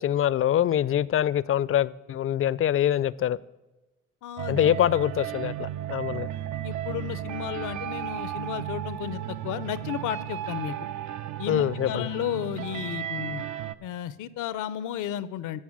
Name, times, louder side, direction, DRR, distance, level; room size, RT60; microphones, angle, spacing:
voice 1, 0.0-3.4 4.5-6.3 11.5-12.1, left 11 dB, 45° left, 0.4 m, -24 dB
voice 2, 4.2-4.8 6.6-10.7 11.4-13.4 13.8-15.6, left 11 dB, 90° left, 0.6 m, -33 dB
sound 1, 4.4-13.7, right 11 dB, 70° right, 0.5 m, -34 dB
13.5 x 4.6 x 8.5 m
cardioid pair, 90°, 30 cm